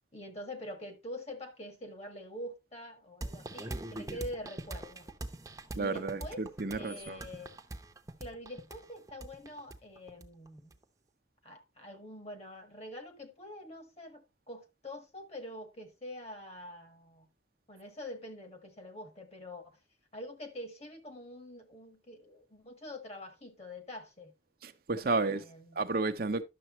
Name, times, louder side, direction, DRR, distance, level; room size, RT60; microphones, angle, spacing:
voice 1, 0.1-5.1 5.7-6.4 6.7-7.6 8.2-10.7 11.4-17.3 17.7-19.8 20.1-24.3 25.0-25.8, left 1 dB, 35° left, 1.5 m, -45 dB
sound 1, 3.2-10.8, right 1 dB, 20° right, 0.8 m, -42 dB
voice 2, 5.8-7.2 24.6-25.4 25.7-26.4, right 3 dB, 55° right, 0.7 m, -32 dB
11.0 x 6.8 x 3.0 m
head